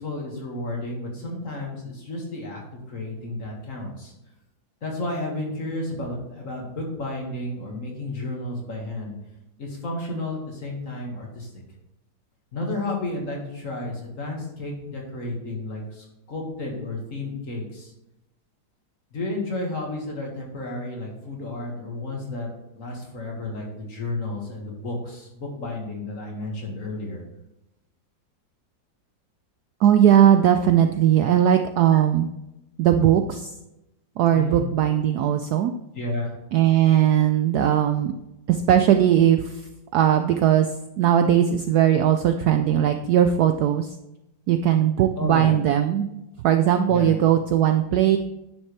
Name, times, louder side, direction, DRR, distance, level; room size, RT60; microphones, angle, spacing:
voice 1, 0.0-2.6 2.9-4.1 4.8-9.1 9.6-11.5 12.5-17.9 19.1-22.5 22.7-27.2 34.3-34.6 35.9-36.4 45.2-45.6 46.9-47.2, left 2 dB, 45° left, -1 dB, 2.1 m, -32 dB
voice 2, 29.8-32.3 32.8-33.5 34.2-35.7 36.5-38.1 38.5-39.6 39.9-40.7 41.0-43.9 44.5-46.1 46.4-48.2, right 10 dB, 75° right, 7 dB, 0.9 m, -19 dB
10.0 x 6.5 x 3.3 m, 0.91 s
omnidirectional pair, 2.1 m